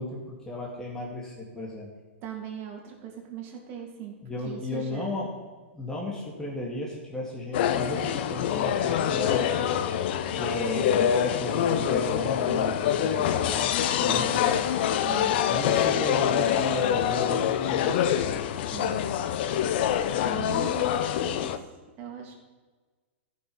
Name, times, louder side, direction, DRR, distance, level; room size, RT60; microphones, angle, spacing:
voice 1, 0.0-1.9 4.2-5.3 5.7-9.6 10.3-13.7 14.0-14.6 15.5-18.2, left 1 dB, 10° left, -4 dB, 2.3 m, -34 dB
voice 2, 2.2-4.1 4.4-5.2 14.0-14.4 15.0-15.4 18.7-19.0 20.2-21.5 22.0-22.3, right 9 dB, 40° right, 0 dB, 3.0 m, -39 dB
sound 1, 7.5-21.6, left 9 dB, 55° left, 0.8 m, -25 dB
14.0 x 6.4 x 5.5 m, 1.3 s
hypercardioid pair, 120°, 6 cm